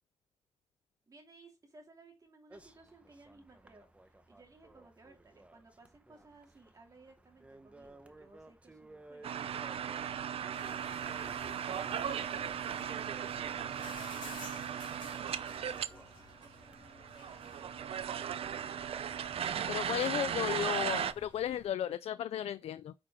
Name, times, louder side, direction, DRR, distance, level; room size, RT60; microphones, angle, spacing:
voice 1, 1.1-12.1 12.7-20.7, right 3 dB, 35° right, 2.7 m, -60 dB
sound 1, 2.5-19.8, right 2 dB, 10° right, 0.9 m, -59 dB
sound 2, 9.2-15.9 16.1-16.2 16.4-21.1, right 9 dB, 70° right, 0.5 m, -37 dB
sound 3, 10.5-21.7, left 4 dB, 50° left, 2.6 m, -55 dB
voice 2, 19.7-22.9, left 10 dB, 90° left, 0.4 m, -34 dB
8.8 x 5.0 x 3.6 m
wide cardioid pair, 145°, 10 cm